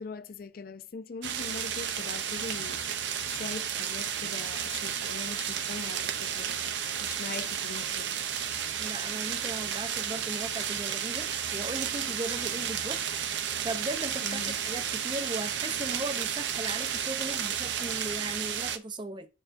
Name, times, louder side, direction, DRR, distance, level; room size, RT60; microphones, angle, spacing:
voice 1, 0.0-8.2 14.2-14.6, left 4 dB, 50° left, 0.4 m, -42 dB
sound 1, 1.2-18.8, right 8 dB, 65° right, 0.6 m, -32 dB
voice 2, 8.8-13.0 13.6-19.3, right 2 dB, 25° right, 0.6 m, -37 dB
11.0 x 4.5 x 2.6 m
head